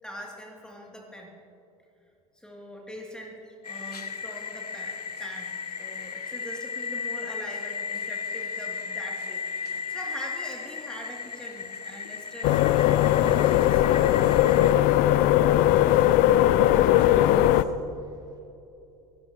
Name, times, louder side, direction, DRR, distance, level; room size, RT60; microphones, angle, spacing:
voice 1, 0.0-1.4 2.3-5.5 5.8-14.3, equal, 5° left, -1 dB, 2.5 m, -43 dB
sound 1, 3.6-14.7, left 5 dB, 85° left, 0.8 m, -35 dB
sound 2, 12.4-17.6, left 13 dB, 45° left, 0.6 m, -19 dB
voice 2, 16.6-18.1, right 2 dB, 20° right, 0 dB, 2.5 m, -40 dB
24.0 x 18.0 x 2.9 m, 2.7 s
figure-of-eight pair, 75°, 19 cm